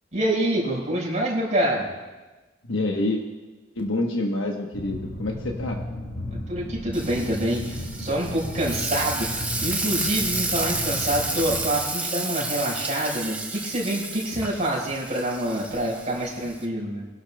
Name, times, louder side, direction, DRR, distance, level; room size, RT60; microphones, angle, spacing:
voice 1, 0.1-1.9 6.5-9.3 9.6-17.1, right 1 dB, 35° right, -5 dB, 4.5 m, -26 dB
voice 2, 2.6-3.2 3.7-5.8, left 2 dB, 75° left, 0 dB, 1.1 m, -27 dB
sound 1, 4.7-11.7, left 1 dB, 40° left, 4.0 m, -35 dB
Frying (food), 6.9-16.6, right 2 dB, 5° right, 0.8 m, -31 dB
25.0 x 12.0 x 2.2 m, 1.2 s
head